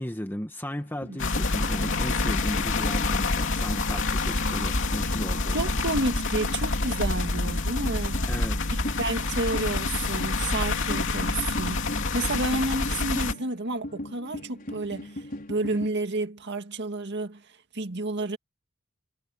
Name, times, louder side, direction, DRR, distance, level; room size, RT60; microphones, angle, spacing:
voice 1, 0.0-5.9 8.3-8.7, equal, 10° left, 1.5 m, -35 dB
sound 1, 0.8-15.9, left 1 dB, 45° left, 6.0 m, -40 dB
sound 2, 1.2-13.3, left 3 dB, 60° left, 3.0 m, -27 dB
voice 2, 5.5-8.2 8.7-15.2 15.5-17.4 17.7-18.4, right 2 dB, 55° right, 2.0 m, -30 dB
head